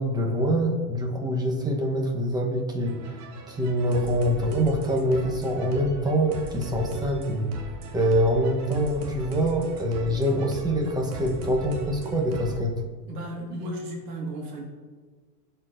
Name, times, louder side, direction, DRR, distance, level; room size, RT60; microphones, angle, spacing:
voice 1, 0.0-3.2 3.5-12.8, equal, 10° right, 0 dB, 1.0 m, -25 dB
sound 1, 2.9-12.6, right 4 dB, 35° right, 0.7 m, -39 dB
voice 2, 13.1-14.6, right 1 dB, 75° right, -1 dB, 1.9 m, -34 dB
12.0 x 4.4 x 2.6 m, 1.5 s
hypercardioid pair, 115°, 49 cm